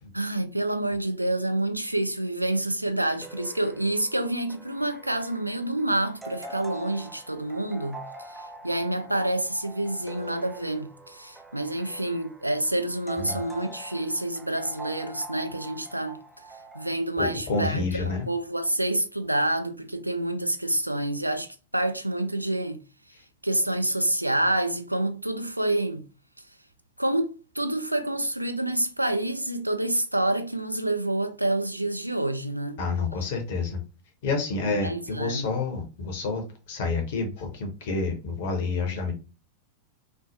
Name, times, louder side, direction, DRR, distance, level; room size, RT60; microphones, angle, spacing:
voice 1, 0.1-16.2 16.7-22.8 23.4-26.1 27.0-32.8 34.6-35.5, right 1 dB, 85° right, 0.4 m, -28 dB
sound 1, 3.2-16.9, right 2 dB, 5° right, 0.3 m, -45 dB
voice 2, 17.2-18.3 32.8-33.8 34.2-39.1, left 3 dB, 55° left, 0.8 m, -29 dB
3.1 x 2.0 x 2.6 m
figure-of-eight pair, 90°, 0 cm